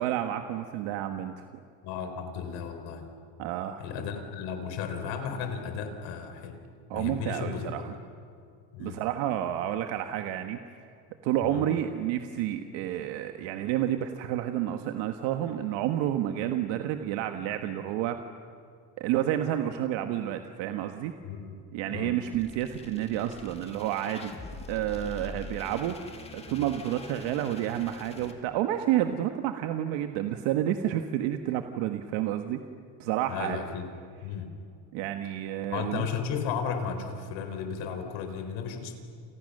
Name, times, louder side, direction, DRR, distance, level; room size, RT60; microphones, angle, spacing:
voice 1, 0.0-1.5 3.4-3.9 6.9-7.9 8.8-10.6 11.2-18.2 19.0-21.1 21.7-24.3 24.7-32.6 33.0-33.6 34.9-36.1, right 12 dB, 90° right, 6 dB, 1.5 m, -30 dB
voice 2, 1.8-3.1 3.8-6.6 6.9-7.9 8.7-9.0 11.4-11.6 21.2-21.5 21.9-22.2 33.3-33.9 34.2-34.5 35.7-38.9, left 6 dB, 80° left, 6 dB, 4.3 m, -34 dB
sound 1, 22.3-28.3, left 3 dB, 15° left, 2.2 m, -44 dB
30.0 x 29.0 x 6.6 m, 2.4 s
cardioid pair, 165°, 44 cm